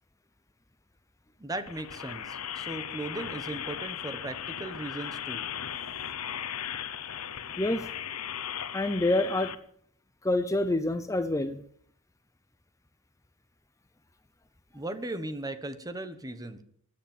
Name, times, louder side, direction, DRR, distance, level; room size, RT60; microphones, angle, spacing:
voice 1, 1.4-5.5 14.7-16.6, right 2 dB, 15° right, 10 dB, 1.3 m, -37 dB
sound 1, 1.6-9.5, left 9 dB, 80° left, 1.1 m, -37 dB
voice 2, 8.7-9.5 10.2-11.6, left 2 dB, 15° left, 10 dB, 0.7 m, -27 dB
16.5 x 11.0 x 7.3 m, 0.66 s
head